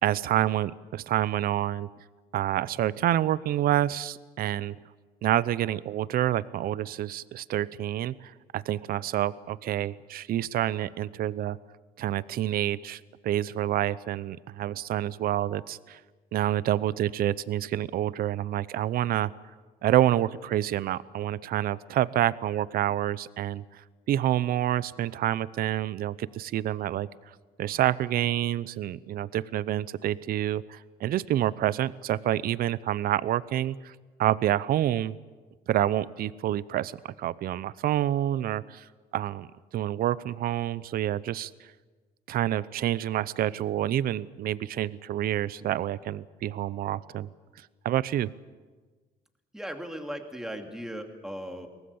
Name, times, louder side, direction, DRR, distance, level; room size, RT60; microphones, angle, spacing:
voice 1, 0.0-1.9 2.3-4.7 5.2-11.6 12.0-16.0 16.3-19.3 19.8-35.1 35.7-38.9 39.1-39.5 39.7-41.5 42.3-47.3 47.8-48.3, right 12 dB, 60° right, 19 dB, 0.7 m, -28 dB
voice 2, 49.5-51.7, equal, 5° right, 4 dB, 2.8 m, -37 dB
23.0 x 19.0 x 8.6 m, 1.3 s
cardioid pair, 110°, 17 cm